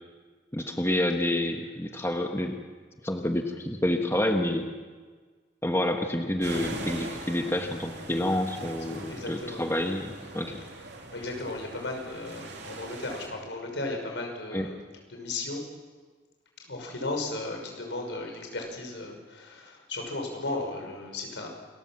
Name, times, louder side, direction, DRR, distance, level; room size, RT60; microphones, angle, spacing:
voice 1, 0.5-2.6 3.0-4.7 5.6-10.6 14.5-14.7, left 1 dB, 15° left, 4 dB, 1.1 m, -28 dB
sound 1, 6.4-13.3, right 2 dB, 75° right, 3.1 m, -42 dB
voice 2, 9.1-9.6 11.1-14.8 15.1-15.6 16.6-21.5, left 2 dB, 90° left, 2 dB, 5.6 m, -35 dB
28.0 x 13.5 x 7.4 m, 1.5 s
head